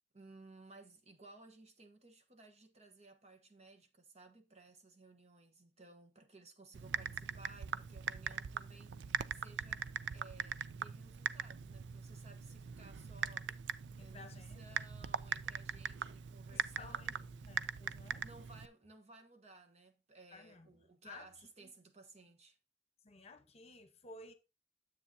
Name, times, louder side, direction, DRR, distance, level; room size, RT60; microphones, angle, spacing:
voice 1, 0.1-9.9 10.1-13.5 14.0-17.7 18.2-22.6, right 3 dB, 40° right, 1.1 m, -59 dB
Typing, 6.7-18.7, right 7 dB, 75° right, 0.4 m, -41 dB
voice 2, 14.0-14.9 15.7-15.8 16.5-18.3 20.3-20.7 21.0-21.3 21.6-21.7 23.0-24.3, left 3 dB, 35° left, 1.0 m, -55 dB
9.9 x 7.7 x 2.7 m
head